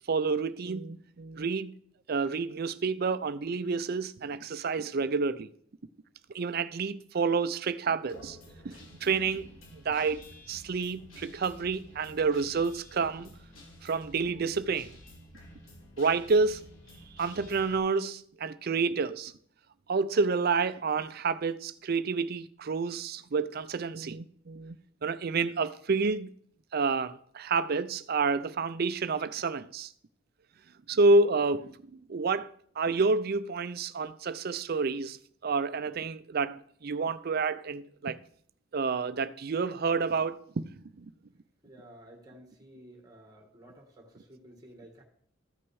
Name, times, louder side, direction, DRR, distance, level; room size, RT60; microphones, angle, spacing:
voice 1, 0.1-1.7 2.1-5.5 6.3-8.4 8.6-13.3 13.8-14.9 16.0-16.6 17.2-19.3 19.9-26.3 26.7-29.9 30.9-31.8 32.1-35.2 35.4-38.2 38.7-41.1, right 4 dB, 50° right, 0.5 m, -29 dB
Guitar, 8.1-17.8, left 1 dB, 75° left, 3.3 m, -51 dB
voice 2, 41.6-45.0, right 1 dB, 20° right, 1.5 m, -53 dB
13.5 x 6.0 x 4.7 m
head